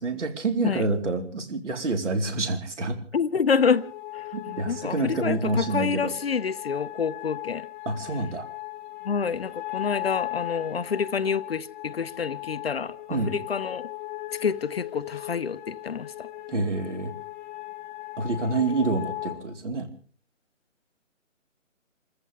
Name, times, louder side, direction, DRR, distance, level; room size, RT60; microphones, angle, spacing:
voice 1, 0.0-3.0 4.3-6.1 7.9-8.5 13.1-13.4 16.5-17.1 18.2-19.9, right 3 dB, 65° right, 4.2 m, -27 dB
voice 2, 3.1-3.8 4.1-7.7 9.0-13.8 14.4-16.3, left 6 dB, 50° left, 0.8 m, -28 dB
sound 1, 3.6-19.3, left 17 dB, 5° left, 0.8 m, -38 dB
28.5 x 14.5 x 3.5 m
hypercardioid pair, 160°, 39 cm